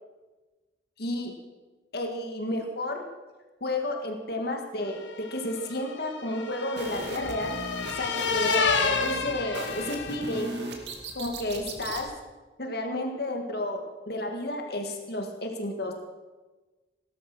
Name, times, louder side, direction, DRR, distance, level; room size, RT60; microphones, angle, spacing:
voice 1, 1.0-1.3 1.9-3.0 3.6-5.0 5.3-7.6 8.0-10.5 11.1-12.1 12.6-13.8 14.1-15.9, left 1 dB, 55° left, 3 dB, 2.1 m, -31 dB
sound 1, 5.1-10.5, left 5 dB, 75° left, 1.7 m, -30 dB
sound 2, 6.8-12.1, right 1 dB, 65° right, 2.5 m, -38 dB
17.5 x 12.5 x 6.3 m, 1.2 s
head